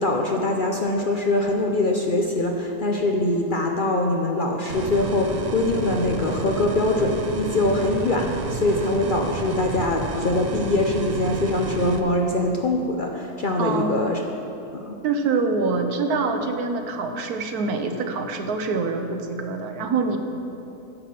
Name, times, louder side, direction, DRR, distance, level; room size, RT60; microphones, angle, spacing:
voice 1, 0.0-14.2 14.7-15.0, left 2 dB, 50° left, 1 dB, 0.6 m, -23 dB
sound 1, 4.7-12.0, right 4 dB, 60° right, 0.4 m, -30 dB
voice 2, 13.6-14.1 15.0-20.2, right 4 dB, 85° right, 6 dB, 1.3 m, -25 dB
10.5 x 7.7 x 5.9 m, 2.8 s
omnidirectional pair, 1.6 m